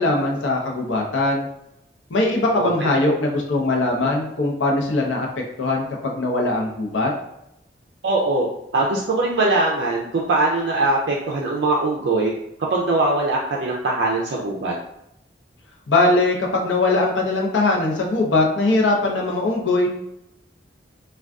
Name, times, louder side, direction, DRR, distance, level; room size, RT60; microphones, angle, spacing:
voice 1, 0.0-1.5 2.1-7.1 15.9-19.9, left 2 dB, 85° left, 0 dB, 0.6 m, -21 dB
voice 2, 2.6-3.1 8.0-8.5 8.7-12.3 12.7-14.7, right 2 dB, 70° right, -3 dB, 0.4 m, -21 dB
2.4 x 2.3 x 3.4 m, 0.82 s
head